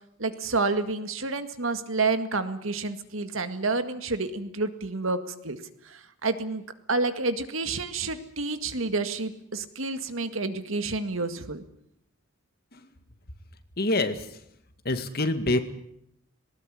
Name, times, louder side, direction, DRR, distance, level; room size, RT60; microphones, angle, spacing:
voice 1, 0.2-5.6 5.9-6.6 6.9-11.6, right 3 dB, 80° right, 9 dB, 2.0 m, -29 dB
voice 2, 13.8-14.3 14.9-15.6, left 2 dB, 50° left, 8 dB, 2.1 m, -25 dB
19.5 x 19.0 x 10.0 m, 0.76 s
head